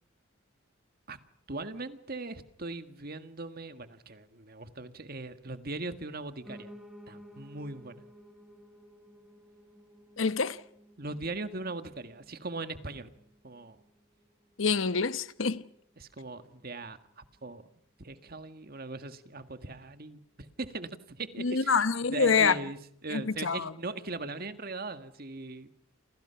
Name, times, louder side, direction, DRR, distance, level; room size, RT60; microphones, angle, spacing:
voice 1, 1.5-6.7 7.1-8.0 11.0-13.1 13.4-13.8 16.0-17.6 18.0-21.8 22.1-25.7, right 3 dB, 50° right, 1.8 m, -40 dB
Piano, 6.4-15.5 15.9-17.1 17.4-17.5 17.7-17.8 18.1-18.2 18.7-18.8, equal, ahead, 3.3 m, -55 dB
voice 2, 10.2-10.6 14.6-15.6 21.4-22.6 23.1-23.7, left 5 dB, 75° left, 1.0 m, -26 dB
29.5 x 27.5 x 5.9 m
head